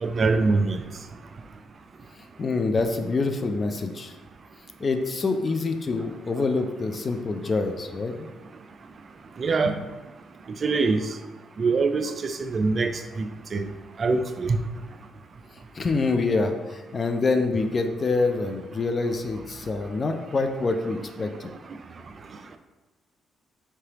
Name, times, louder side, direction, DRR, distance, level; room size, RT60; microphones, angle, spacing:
voice 1, 0.0-0.8 9.4-9.7 10.6-11.0 11.6-12.9 13.5-13.7 14.0-14.6, right 4 dB, 45° right, 8 dB, 0.3 m, -23 dB
voice 2, 2.4-4.1 4.8-8.3 9.7-9.8 15.7-21.5, left 3 dB, 35° left, 6 dB, 0.4 m, -26 dB
4.5 x 3.3 x 2.9 m, 1.2 s
cardioid pair, 90°, 0 cm